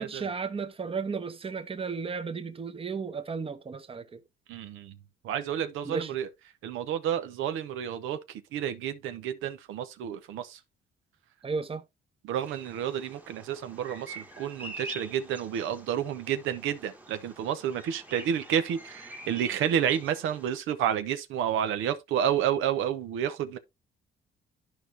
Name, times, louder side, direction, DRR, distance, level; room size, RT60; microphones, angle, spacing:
voice 1, 0.0-4.2 5.8-6.1 11.4-11.8, right 5 dB, 30° right, 0.9 m, -34 dB
voice 2, 4.5-5.0 5.2-6.3 6.6-10.6 12.2-23.6, right 9 dB, 90° right, 0.8 m, -30 dB
Bird vocalization bird call bird song, 12.4-20.6, right 1 dB, 10° right, 1.1 m, -46 dB
11.5 x 4.8 x 2.7 m
cardioid pair, 90°, 20 cm